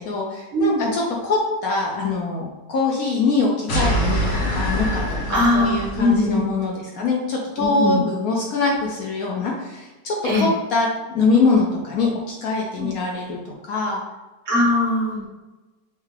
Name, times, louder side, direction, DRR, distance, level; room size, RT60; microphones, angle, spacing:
voice 1, 0.0-14.0, left 3 dB, 65° left, -1 dB, 0.9 m, -23 dB
voice 2, 0.5-0.9 5.3-6.4 7.7-8.0 10.2-10.5 12.8-12.9 14.5-15.3, left 1 dB, 50° right, -4 dB, 1.2 m, -20 dB
sound 1, 3.7-6.3, equal, 85° left, 1.8 m, -24 dB
5.6 x 2.4 x 3.2 m, 1.1 s
omnidirectional pair, 1.9 m